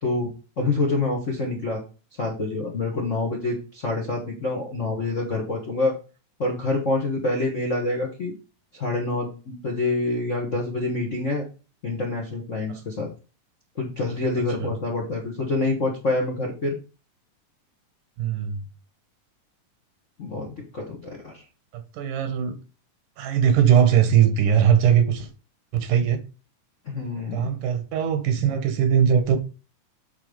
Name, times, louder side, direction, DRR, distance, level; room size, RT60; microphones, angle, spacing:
voice 1, 0.0-1.8 2.2-5.9 6.4-8.3 8.7-11.4 11.8-13.1 13.7-16.8 20.2-21.4 26.8-27.5, left 2 dB, 65° left, 0.7 m, -27 dB
voice 2, 18.2-18.6 21.7-22.6 23.2-25.3 25.7-26.2 27.3-29.4, right 8 dB, 85° right, 2.7 m, -20 dB
8.2 x 3.2 x 5.2 m
omnidirectional pair, 3.6 m